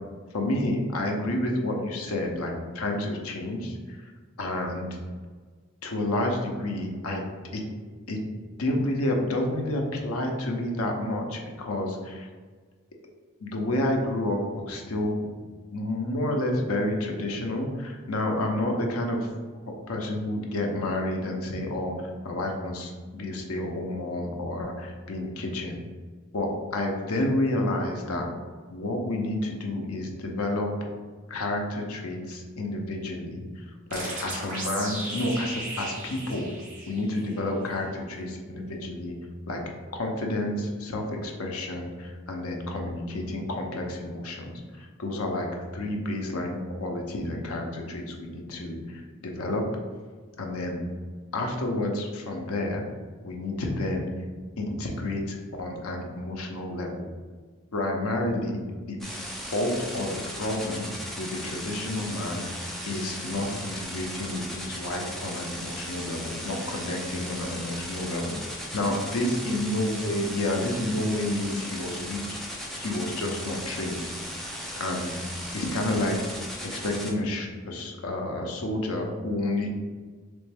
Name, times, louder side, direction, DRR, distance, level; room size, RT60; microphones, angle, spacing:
voice 1, 0.3-4.1 4.4-4.9 5.8-7.2 7.5-7.6 8.1-8.2 8.6-12.3 13.4-15.3 15.7-19.3 19.9-25.8 26.3-28.3 28.7-30.7 31.3-33.6 33.9-36.5 36.9-39.1 39.5-39.6 39.9-49.6 50.4-50.8 51.3-52.8 53.2-54.1 54.6-57.1 57.7-59.0 59.5-60.9 61.2-68.4 68.7-74.1 74.8-75.1 75.5-79.7, left 1 dB, 90° left, 2 dB, 0.7 m, -30 dB
sound 1, 33.9-37.4, right 1 dB, 40° right, 1.0 m, -36 dB
sound 2, 59.0-77.1, equal, ahead, 0.4 m, -37 dB
3.4 x 3.1 x 3.4 m, 1.5 s
head